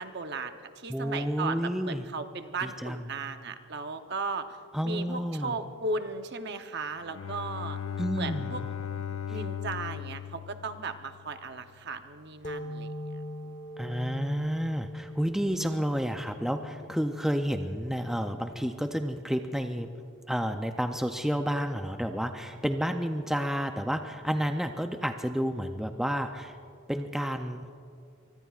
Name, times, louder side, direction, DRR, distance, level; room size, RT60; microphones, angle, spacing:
voice 1, 0.0-4.6 4.8-7.8 8.1-8.6 9.3-12.9 13.4-13.5, right 3 dB, 50° right, 8 dB, 0.8 m, -36 dB
voice 2, 0.9-2.1 2.6-3.0 4.7-5.6 8.0-8.5 9.3-9.4 13.8-19.9 20.3-26.6 26.9-27.7, equal, ahead, 5 dB, 0.4 m, -30 dB
Bowed string instrument, 7.0-11.5, left 8 dB, 75° left, 0.4 m, -37 dB
sound 1, 12.4-19.7, left 1 dB, 35° left, 1.1 m, -42 dB
24.5 x 24.0 x 2.4 m, 2.4 s
head